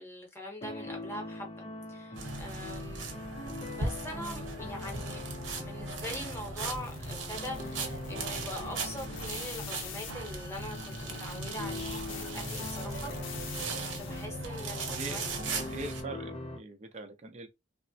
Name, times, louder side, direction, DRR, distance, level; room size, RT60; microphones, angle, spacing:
voice 1, 0.0-1.5 1.9-3.1 3.7-5.3 5.5-12.0 12.3-15.2 15.5-15.7, left 1 dB, 15° left, 1.0 m, -43 dB
sound 1, 0.6-16.6, left 2 dB, 30° left, 0.5 m, -43 dB
sound 2, 2.2-16.0, right 3 dB, 75° right, 0.9 m, -38 dB
sound 3, 6.6-14.4, left 7 dB, 90° left, 0.7 m, -46 dB
voice 2, 14.9-15.4 15.7-17.5, right 2 dB, 35° right, 0.5 m, -42 dB
3.3 x 2.0 x 2.6 m
head